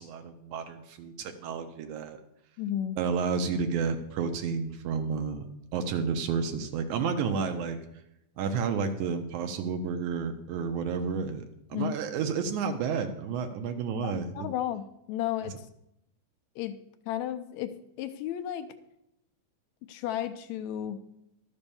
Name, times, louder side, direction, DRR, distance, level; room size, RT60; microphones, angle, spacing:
voice 1, 0.0-2.2 3.0-5.5 5.7-7.8 8.4-11.5 11.7-14.5, right 5 dB, 80° right, 6 dB, 2.0 m, -31 dB
voice 2, 2.6-3.0 11.7-12.0 14.0-15.7 16.6-16.8 17.1-18.7 19.9-21.0, left 11 dB, 80° left, 10 dB, 1.7 m, -33 dB
12.0 x 5.4 x 6.9 m, 0.83 s
omnidirectional pair, 3.6 m